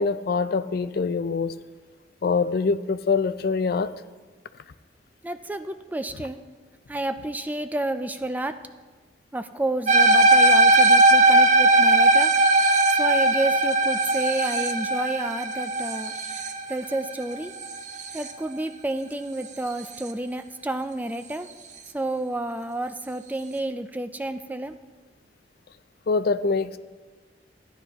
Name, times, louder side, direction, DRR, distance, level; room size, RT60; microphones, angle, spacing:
voice 1, 0.0-1.5 2.2-3.9 26.1-26.8, left 4 dB, 60° left, 13 dB, 0.4 m, -24 dB
voice 2, 5.2-6.4 6.9-8.6 9.3-12.3 12.9-16.1 16.7-17.5 18.1-21.5 21.9-24.8, right 1 dB, 10° right, 9 dB, 0.3 m, -30 dB
sound 1, 9.9-18.3, right 2 dB, 45° right, 0.7 m, -19 dB
14.5 x 10.0 x 3.0 m, 1.3 s
head